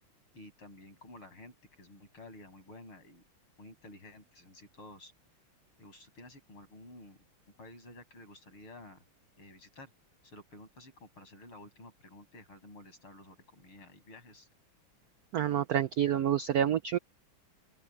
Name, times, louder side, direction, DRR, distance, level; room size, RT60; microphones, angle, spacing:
voice 1, 0.3-3.2 3.6-5.1 5.8-7.2 7.6-9.0 9.4-9.9 10.2-14.5, left 1 dB, 80° left, 8.2 m, -52 dB
voice 2, 15.3-17.0, right 10 dB, 80° right, 0.8 m, -28 dB
open air
omnidirectional pair, 2.3 m